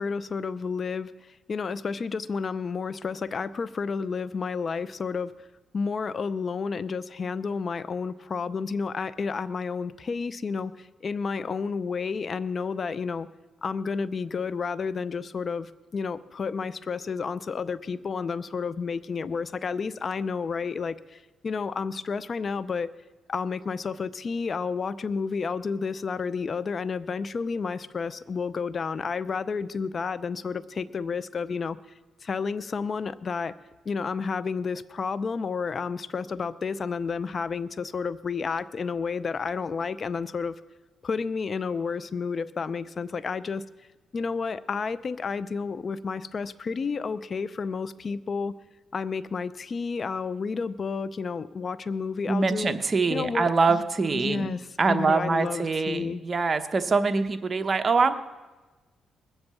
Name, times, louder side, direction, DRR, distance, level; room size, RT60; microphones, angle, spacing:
voice 1, 0.0-5.3 5.7-13.3 13.6-22.9 23.3-31.8 32.2-33.5 33.9-40.6 41.0-43.6 44.1-48.5 48.9-52.8 53.1-53.8 54.1-56.2, left 5 dB, 45° left, 16 dB, 0.5 m, -31 dB
voice 2, 52.3-54.5 54.8-58.1, right 4 dB, 35° right, 8 dB, 1.0 m, -24 dB
21.0 x 8.0 x 7.0 m, 1.2 s
cardioid pair, 75°, 0 cm